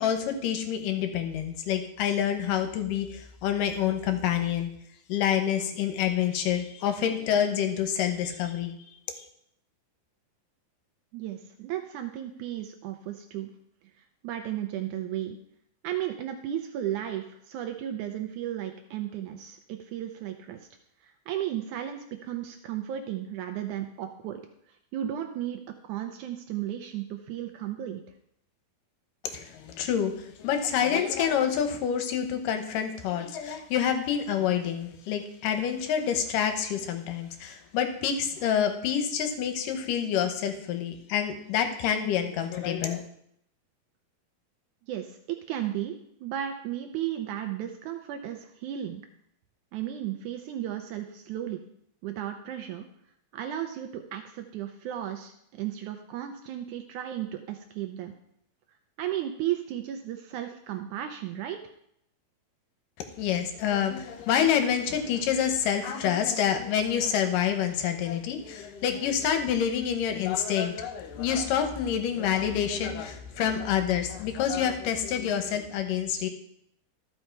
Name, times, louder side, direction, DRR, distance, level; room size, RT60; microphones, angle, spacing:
voice 1, 0.0-4.7 5.1-8.8 9.2-9.3 29.2-43.0 63.0-76.3, left 8 dB, 70° left, 7 dB, 2.3 m, -27 dB
voice 2, 11.1-13.5 14.0-15.4 15.8-20.7 21.0-24.4 24.7-28.0 44.9-49.0 49.7-51.6 52.0-52.9 53.3-58.1 59.0-61.6, right 11 dB, 85° right, 5 dB, 1.7 m, -34 dB
13.5 x 5.6 x 4.5 m, 0.71 s
omnidirectional pair, 4.2 m